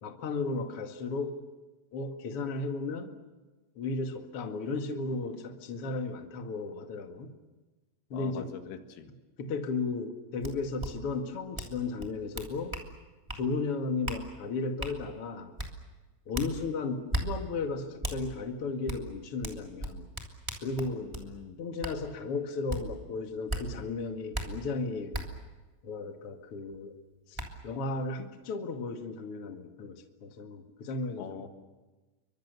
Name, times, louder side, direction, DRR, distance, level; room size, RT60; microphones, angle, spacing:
voice 1, 0.0-1.4 1.9-3.1 3.7-7.4 8.1-8.5 9.4-12.8 13.3-15.5 16.2-20.1 20.6-21.1 21.6-25.2 25.8-26.9 27.3-31.5, left 3 dB, 55° left, 4 dB, 1.5 m, -35 dB
voice 2, 8.1-9.1 21.0-21.6 31.2-31.5, left 7 dB, 75° left, 6 dB, 4.3 m, -43 dB
sound 1, 10.4-10.5 10.8-10.9 11.5-11.7 12.0-12.9 13.3-13.4 14.0-14.2 14.8-14.9 15.6-15.7 16.3-16.5 17.1-17.2 18.0-18.2 18.9-19.0 19.4-21.3 21.8-21.9 22.7-22.8 23.5-23.6 24.3-24.4 25.1-25.2 26.7-26.8 27.3-27.5, right 1 dB, 10° right, 1.3 m, -35 dB
29.5 x 24.0 x 6.9 m, 1.2 s
omnidirectional pair, 5.9 m